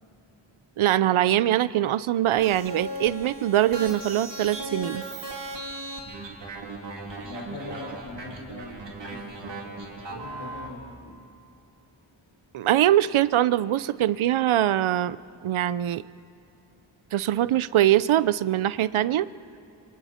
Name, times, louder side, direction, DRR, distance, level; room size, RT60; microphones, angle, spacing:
voice 1, 0.8-5.0 12.5-15.2 15.4-16.0 17.1-19.3, right 12 dB, 80° right, 17 dB, 0.7 m, -22 dB
sound 1, 2.4-10.7, right 2 dB, 60° right, 3.3 m, -37 dB
voice 2, 7.2-11.2, left 2 dB, 85° left, -7 dB, 6.0 m, -42 dB
28.0 x 26.0 x 4.4 m, 2.9 s
cardioid pair, 75°, 48 cm